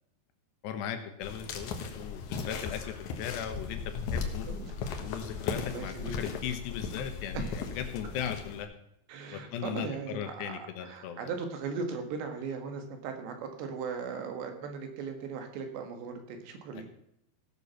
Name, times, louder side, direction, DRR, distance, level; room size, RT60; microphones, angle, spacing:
voice 1, 0.6-4.5 5.0-8.7 9.3-11.3, left 8 dB, 80° left, 6 dB, 3.3 m, -38 dB
sound 1, 1.2-8.6, left 5 dB, 65° left, 1.9 m, -37 dB
voice 2, 5.7-6.2 7.3-7.5 9.1-16.9, right 5 dB, 90° right, 5 dB, 3.8 m, -38 dB
16.5 x 6.9 x 5.6 m, 0.76 s
omnidirectional pair, 4.9 m